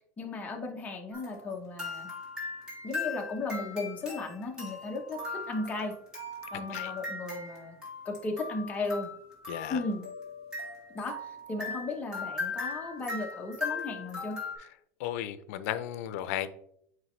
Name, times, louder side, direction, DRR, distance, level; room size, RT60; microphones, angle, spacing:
voice 1, 0.2-2.1 2.8-5.9 6.5-7.7 8.0-9.1 9.7-10.0 10.9-14.4, left 3 dB, 20° left, 1 dB, 1.1 m, -35 dB
sound 1, 1.1-14.6, left 3 dB, 10° right, 2.4 m, -39 dB
voice 2, 9.5-9.8 15.0-16.5, left 12 dB, 75° left, 12 dB, 0.6 m, -34 dB
9.2 x 3.2 x 3.2 m, 0.70 s
supercardioid pair, 155°, 8 cm